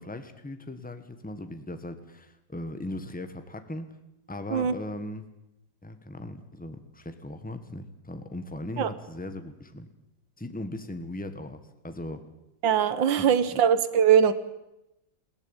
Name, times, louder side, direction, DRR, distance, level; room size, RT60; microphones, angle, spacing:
voice 1, 0.0-3.9 4.3-5.3 5.8-9.9 10.4-12.2 13.2-13.3 13.5-13.6, left 1 dB, 5° left, 1.1 m, -38 dB
voice 2, 12.6-14.3, right 8 dB, 75° right, 1.8 m, -21 dB
21.5 x 16.5 x 8.9 m
omnidirectional pair, 2.1 m